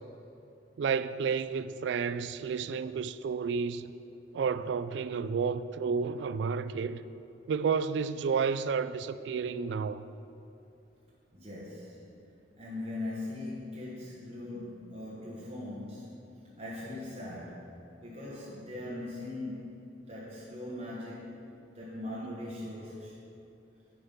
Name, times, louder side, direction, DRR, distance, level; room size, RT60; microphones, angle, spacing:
voice 1, 0.8-3.9 4.3-7.0 7.5-10.0 22.2-22.3, right 5 dB, 70° right, 0.3 m, -31 dB
voice 2, 11.3-12.2 12.6-16.2 16.6-17.8 18.0-19.8 20.1-21.3 21.7-23.2, left 1 dB, 35° right, 1.3 m, -40 dB
9.4 x 5.8 x 5.4 m
head